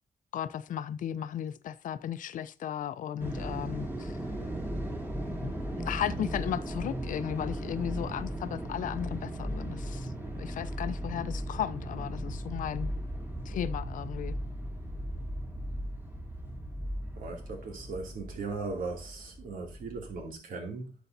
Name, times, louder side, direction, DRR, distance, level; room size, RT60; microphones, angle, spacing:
voice 1, 0.3-4.2 5.4-12.9 13.5-14.4, left 10 dB, 70° left, 0.6 m, -35 dB
sound 1, 3.2-20.3, equal, 15° right, 2.2 m, -37 dB
voice 2, 17.2-20.9, right 3 dB, 80° right, 2.6 m, -38 dB
11.0 x 6.9 x 2.7 m
cardioid pair, 115°, 14 cm